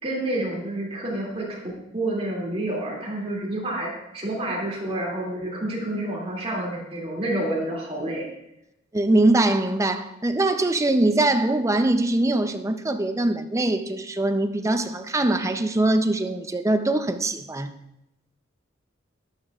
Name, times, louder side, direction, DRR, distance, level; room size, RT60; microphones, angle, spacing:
voice 1, 0.0-8.3, right 1 dB, 30° right, 2.5 m, -29 dB
voice 2, 8.9-17.7, right 2 dB, 15° right, 0.5 m, -22 dB
13.5 x 11.0 x 2.4 m
head